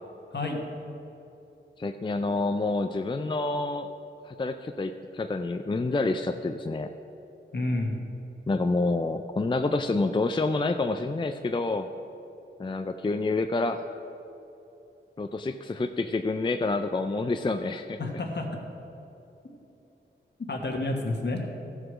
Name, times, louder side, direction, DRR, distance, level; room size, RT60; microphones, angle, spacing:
voice 1, 0.3-0.8 7.5-8.0 18.0-18.5 20.5-21.4, left 2 dB, 60° left, 1 dB, 1.4 m, -30 dB
voice 2, 1.8-3.9 4.3-6.9 8.5-11.9 12.6-13.9 15.2-18.0, left 3 dB, 25° left, 7 dB, 0.4 m, -28 dB
14.0 x 4.8 x 6.1 m, 3.0 s
wide cardioid pair, 75°, 20 cm